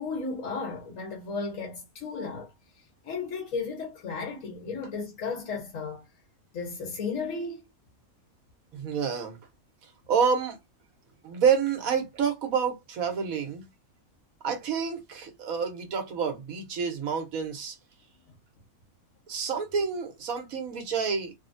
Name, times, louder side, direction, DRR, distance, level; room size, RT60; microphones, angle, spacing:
voice 1, 0.0-2.5 3.0-6.1 6.5-7.6 20.7-20.8, left 4 dB, 65° left, 1.4 m, -34 dB
voice 2, 8.7-9.4 10.1-10.6 11.2-13.6 14.4-17.8 19.3-21.3, right 6 dB, 75° right, 1.3 m, -28 dB
3.3 x 2.1 x 2.5 m
omnidirectional pair, 1.5 m